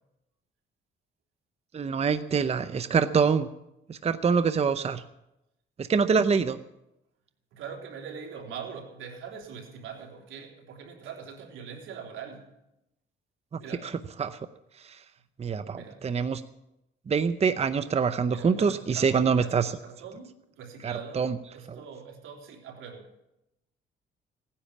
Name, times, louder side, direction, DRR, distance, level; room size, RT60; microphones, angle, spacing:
voice 1, 1.7-3.5 3.9-5.0 5.8-6.6 13.5-13.9 14.2-14.5 14.8-15.0 15.4-16.4 17.1-19.7 20.8-21.4 21.7-21.8, right 5 dB, 30° right, 11 dB, 0.7 m, -25 dB
voice 2, 7.5-12.5 13.6-13.9 15.7-16.0 18.3-20.3 20.6-23.0, right 6 dB, 85° right, 1 dB, 3.6 m, -42 dB
17.5 x 10.0 x 7.2 m, 0.88 s
cardioid pair, 90°, 20 cm